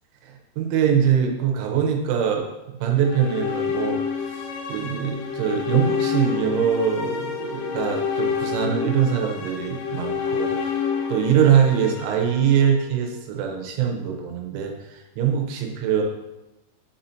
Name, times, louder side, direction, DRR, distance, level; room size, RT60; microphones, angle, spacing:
voice 1, 0.2-16.1, right 8 dB, 85° right, 2 dB, 3.4 m, -23 dB
sound 1, 2.9-13.1, left 6 dB, 80° left, 2.8 m, -28 dB
7.6 x 5.7 x 2.7 m, 0.99 s
omnidirectional pair, 5.5 m